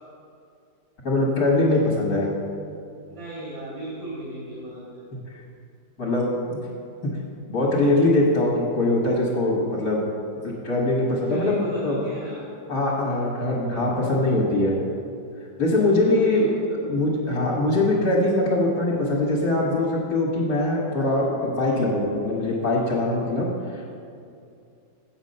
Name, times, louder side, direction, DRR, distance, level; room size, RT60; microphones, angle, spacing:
voice 1, 1.0-2.3 6.0-6.6 7.0-7.1 7.5-10.0 10.4-12.0 12.7-14.7 15.6-16.5 16.8-23.5, left 2 dB, 55° left, -5 dB, 1.8 m, -22 dB
voice 2, 3.1-5.0 11.3-12.4 15.7-16.7, right 1 dB, 80° right, -8 dB, 2.8 m, -34 dB
7.4 x 7.1 x 5.3 m, 2.5 s
omnidirectional pair, 2.1 m